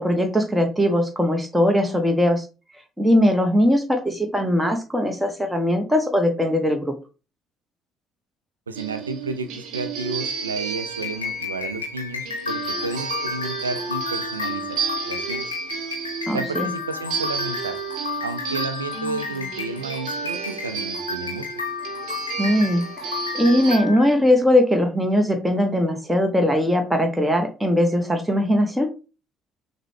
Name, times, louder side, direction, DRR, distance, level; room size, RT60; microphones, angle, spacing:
voice 1, 0.0-2.4 3.0-6.9 16.3-16.7 22.4-28.9, left 1 dB, 10° right, 4 dB, 1.0 m, -20 dB
voice 2, 8.7-14.8 15.0-15.5 16.3-17.8 18.2-21.5, right 3 dB, 85° right, 9 dB, 0.4 m, -32 dB
sound 1, 8.8-23.8, right 6 dB, 60° right, 0.8 m, -32 dB
sound 2, 10.9-24.1, left 5 dB, 85° left, 0.6 m, -32 dB
6.3 x 2.2 x 3.2 m, 0.33 s
figure-of-eight pair, 50°, 0 cm